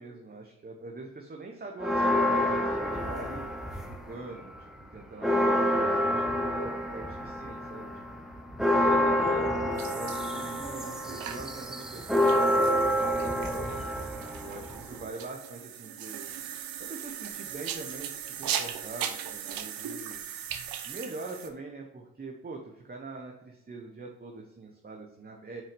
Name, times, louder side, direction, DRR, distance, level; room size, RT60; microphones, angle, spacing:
voice 1, 0.0-3.5 4.1-4.5 4.8-7.9 8.7-13.7 14.4-16.3 16.9-20.2 20.8-25.6, right 3 dB, 25° right, 1 dB, 1.1 m, -43 dB
sound 1, 1.8-4.2 4.5-15.0, left 1 dB, ahead, 1.1 m, -28 dB
sound 2, 9.8-21.5, right 9 dB, 65° right, 0.9 m, -38 dB
6.1 x 4.7 x 5.2 m, 0.94 s
supercardioid pair, 60°, 37 cm